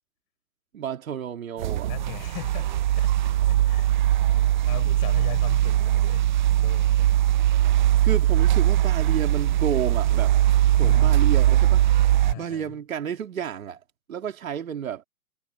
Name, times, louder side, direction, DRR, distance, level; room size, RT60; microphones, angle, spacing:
voice 1, 0.7-1.9 8.0-10.4 10.7-11.8 12.4-13.8 14.1-15.0, right 8 dB, 60° right, 2.9 m, -31 dB
sound 1, 1.6-12.3, right 13 dB, 30° right, 0.6 m, -20 dB
voice 2, 1.9-3.9 4.3-7.1 10.8-11.2 12.2-12.7, left 34 dB, 35° left, 6.3 m, -39 dB
figure-of-eight pair, 125°, 45 cm